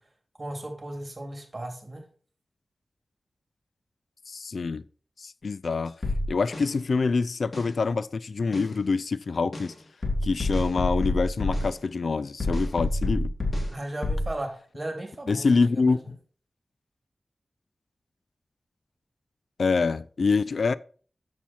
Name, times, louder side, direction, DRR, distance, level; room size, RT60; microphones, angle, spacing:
voice 1, 0.4-2.0 13.7-16.0, right 1 dB, 40° right, 3.0 m, -36 dB
voice 2, 4.3-4.8 5.2-5.9 6.3-9.7 10.2-13.3 15.3-16.2 19.6-20.7, left 4 dB, 80° left, 0.4 m, -25 dB
sound 1, 6.0-6.7 7.5-7.7 8.5-8.7 9.5-9.7 10.0-11.7 12.4-13.7 14.0-14.3, left 2 dB, 55° left, 2.4 m, -27 dB
7.3 x 7.3 x 4.3 m
cardioid pair, 45°, 0 cm